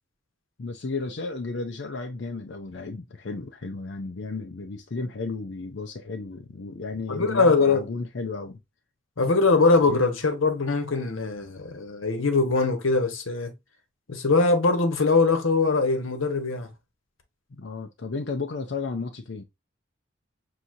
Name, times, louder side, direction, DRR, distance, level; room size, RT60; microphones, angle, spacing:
voice 1, 0.6-8.6 9.9-10.0 17.5-19.4, left 3 dB, 60° left, 0.5 m, -33 dB
voice 2, 7.1-7.8 9.2-13.5 14.1-16.7, left 3 dB, 90° left, 1.0 m, -22 dB
5.9 x 2.7 x 2.5 m
head